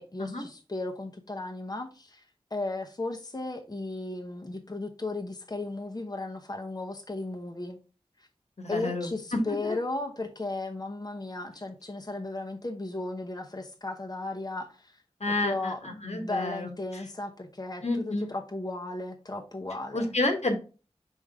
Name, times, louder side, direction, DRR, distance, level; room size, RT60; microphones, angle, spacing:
voice 1, 0.0-2.2 2.5-7.8 8.7-15.0 15.4-20.1, left 2 dB, 35° left, 0.9 m, -35 dB
voice 2, 8.6-9.8 15.2-17.0 17.8-18.3 19.9-20.6, left 2 dB, 75° left, 1.4 m, -30 dB
5.3 x 5.0 x 3.6 m
wide cardioid pair, 55°, 12 cm